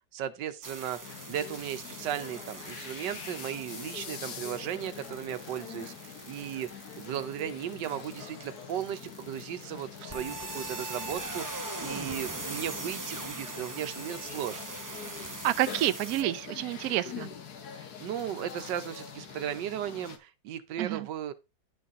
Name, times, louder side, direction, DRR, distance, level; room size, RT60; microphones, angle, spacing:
voice 1, 0.1-1.0 1.3-14.6 17.8-21.3, right 10 dB, 90° right, 1.4 m, -36 dB
sound 1, 0.6-16.2, right 2 dB, 25° right, 0.4 m, -42 dB
sound 2, 1.0-20.2, left 7 dB, 65° left, 1.6 m, -44 dB
voice 2, 15.4-17.3 20.8-21.1, right 14 dB, 70° right, 0.9 m, -29 dB
11.0 x 4.1 x 3.6 m
omnidirectional pair, 1.8 m